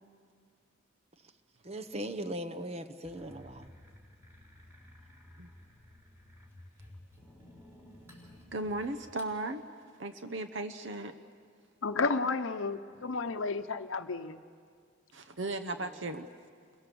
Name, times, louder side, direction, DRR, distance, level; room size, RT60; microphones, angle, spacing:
voice 1, 1.6-3.7 15.7-16.1, right 1 dB, 30° right, 9 dB, 1.0 m, -40 dB
sound 1, 3.0-9.3, left 1 dB, 15° right, 4.0 m, -55 dB
voice 2, 8.5-9.6 10.0-11.2 15.1-16.3, right 2 dB, 65° right, 8 dB, 0.9 m, -36 dB
voice 3, 11.8-14.4, left 4 dB, 80° left, 7 dB, 0.8 m, -32 dB
29.5 x 22.0 x 7.0 m, 2.1 s
head